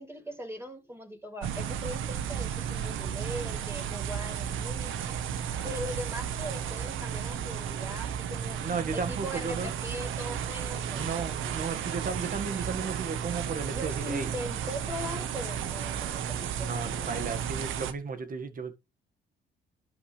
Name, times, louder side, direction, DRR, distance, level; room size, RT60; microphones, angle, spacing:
voice 1, 0.0-5.2 5.6-8.6 8.9-11.6 13.7-17.3, equal, 10° right, 5.1 m, -40 dB
sound 1, 1.4-17.9, right 8 dB, 80° right, 1.3 m, -33 dB
voice 2, 8.6-9.7 10.9-14.3 16.6-18.7, right 5 dB, 45° right, 1.9 m, -34 dB
11.5 x 8.6 x 3.4 m
cardioid pair, 90°, 20 cm